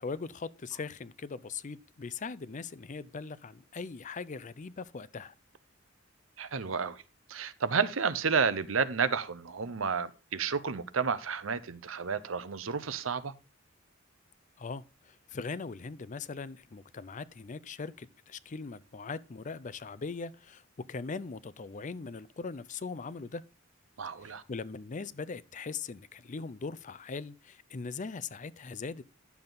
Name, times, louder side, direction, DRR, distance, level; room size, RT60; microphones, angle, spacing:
voice 1, 0.0-5.3 14.6-20.6 20.9-23.4 24.2-29.0, left 4 dB, 40° left, 0.5 m, -40 dB
voice 2, 6.4-7.0 7.3-13.3 24.0-24.4, right 5 dB, 75° right, 0.8 m, -31 dB
11.0 x 7.0 x 4.0 m
head